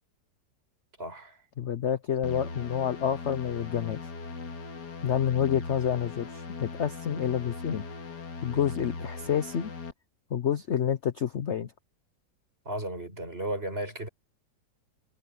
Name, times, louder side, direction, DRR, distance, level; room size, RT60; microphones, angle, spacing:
voice 1, 1.0-1.4 12.6-14.1, right 1 dB, 30° right, 6.0 m, -34 dB
voice 2, 1.6-4.0 5.0-7.8 8.4-9.7 10.3-11.7, left 9 dB, 50° left, 0.9 m, -28 dB
sound 1, 2.2-9.9, left 4 dB, 70° left, 2.5 m, -39 dB
omnidirectional pair, 1.9 m